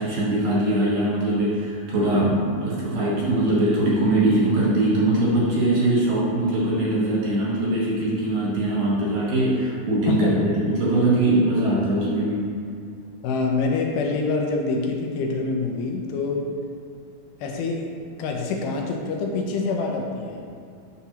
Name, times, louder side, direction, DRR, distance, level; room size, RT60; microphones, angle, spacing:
voice 1, 0.0-12.5, right 1 dB, 65° right, -7 dB, 2.6 m, -22 dB
voice 2, 10.1-10.4 13.2-16.5 17.4-17.9 18.2-20.5, left 3 dB, 80° left, 1 dB, 2.4 m, -26 dB
7.0 x 5.8 x 2.8 m, 2.4 s
omnidirectional pair, 4.5 m